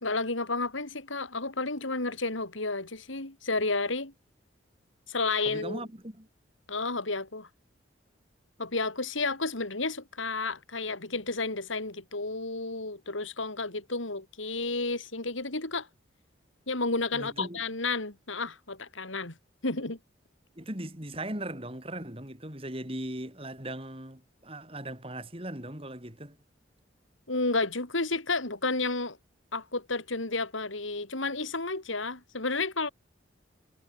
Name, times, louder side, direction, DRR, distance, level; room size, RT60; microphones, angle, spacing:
voice 1, 0.0-4.1 5.1-5.8 6.7-7.5 8.6-15.9 16.7-19.4 19.6-20.0 27.3-29.2 29.5-32.9, left 3 dB, 80° left, 3.9 m, -31 dB
voice 2, 5.4-6.3 17.1-17.6 20.5-26.4, right 1 dB, 30° right, 5.1 m, -39 dB
head